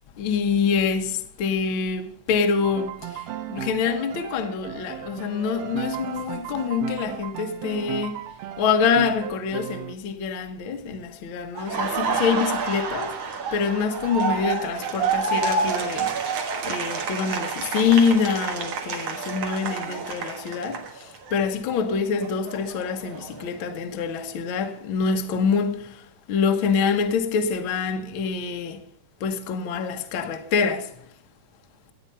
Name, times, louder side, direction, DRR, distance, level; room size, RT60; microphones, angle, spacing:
voice 1, 0.2-8.2 8.6-13.2 13.5-16.1 16.6-28.8 29.2-30.9, left 6 dB, 60° left, 1.4 m, -25 dB
Piano, 2.6-9.9, right 12 dB, 90° right, 1.4 m, -35 dB
Laughter, 11.6-21.4 21.7-23.7, right 5 dB, 55° right, 2.4 m, -29 dB
14.0 x 9.3 x 5.6 m
omnidirectional pair, 3.6 m